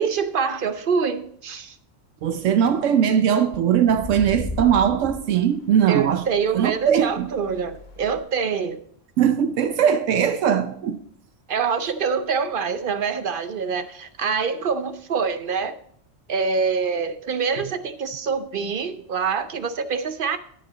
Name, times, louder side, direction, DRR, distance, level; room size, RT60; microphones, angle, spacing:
voice 1, 0.0-1.8 5.9-8.8 11.5-15.8 16.3-20.4, right 5 dB, 55° right, 0.7 m, -25 dB
voice 2, 2.2-6.3 6.5-7.3 9.2-11.0, right 8 dB, 80° right, 1.0 m, -20 dB
sound 1, 2.3-2.7 3.8-8.2, left 2 dB, 40° left, 1.3 m, -37 dB
9.7 x 9.4 x 3.9 m
omnidirectional pair, 1.3 m